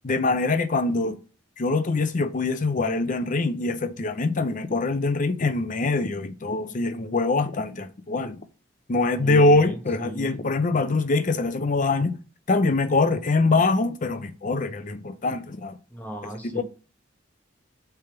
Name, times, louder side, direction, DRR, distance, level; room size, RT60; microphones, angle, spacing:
voice 1, 0.0-1.2 1.6-8.4 8.9-12.2 12.5-15.7 16.5-16.6, left 3 dB, 40° left, 0.6 m, -23 dB
voice 2, 9.1-10.4 15.9-16.6, right 1 dB, 10° left, 1.3 m, -36 dB
6.9 x 3.5 x 5.8 m
head